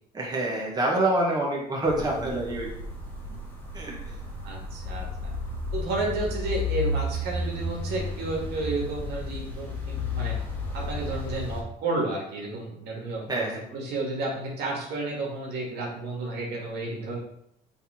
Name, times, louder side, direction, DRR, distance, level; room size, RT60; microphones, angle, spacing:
voice 1, 0.1-2.7 3.7-4.2 13.3-13.6, right 1 dB, 25° right, -3 dB, 1.9 m, -26 dB
sound 1, 1.9-11.6, left 2 dB, 10° left, 2.3 m, -33 dB
voice 2, 4.4-5.3 5.7-10.4 10.7-17.2, right 2 dB, 75° right, -2 dB, 2.3 m, -32 dB
7.2 x 4.0 x 4.5 m, 0.74 s
cardioid pair, 110°, 17 cm